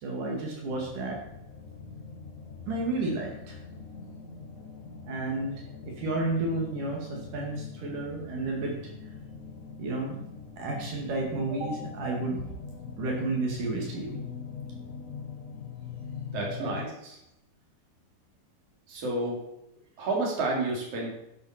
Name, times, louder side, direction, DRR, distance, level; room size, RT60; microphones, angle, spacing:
voice 1, 0.0-1.2 2.7-3.6 5.1-8.8 9.8-10.2 10.6-12.4 13.0-14.2 16.6-16.7, right 2 dB, 80° right, 0 dB, 3.8 m, -31 dB
sound 1, 0.6-16.9, left 6 dB, 70° left, 0.7 m, -42 dB
voice 2, 16.3-16.9 18.9-19.4 20.0-21.1, right 2 dB, 50° right, -2 dB, 4.1 m, -30 dB
11.5 x 11.5 x 4.4 m, 0.85 s
omnidirectional pair, 3.6 m